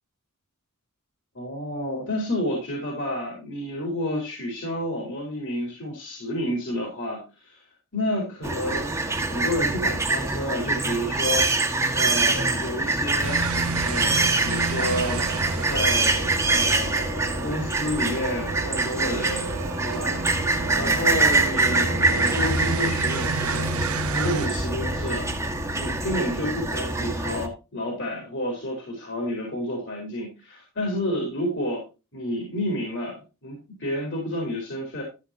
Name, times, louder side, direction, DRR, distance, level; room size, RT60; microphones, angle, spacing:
voice 1, 1.3-7.6 7.9-9.0 9.3-13.4 13.8-15.3 15.6-19.5 19.8-20.2 20.8-25.3 25.7-31.8 32.1-35.0, left 1 dB, 55° left, 0 dB, 3.9 m, -30 dB
sound 1, 8.4-27.5, right 3 dB, 15° right, 1.6 m, -25 dB
sound 2, 13.2-24.5, right 5 dB, 80° right, 0.9 m, -32 dB
13.0 x 8.2 x 2.8 m, 0.29 s
head